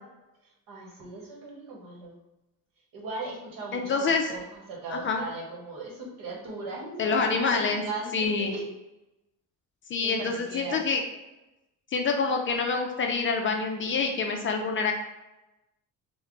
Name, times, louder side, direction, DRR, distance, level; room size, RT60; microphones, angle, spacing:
voice 1, 0.7-2.2 2.9-8.6 10.0-10.8, right 3 dB, 65° right, -2 dB, 1.2 m, -38 dB
voice 2, 3.7-4.3 4.9-5.2 7.0-7.8 8.1-8.5 9.9-11.0 11.9-14.9, left 4 dB, 35° left, 3 dB, 0.4 m, -26 dB
3.2 x 2.2 x 3.8 m, 0.97 s
cardioid pair, 130°, 36 cm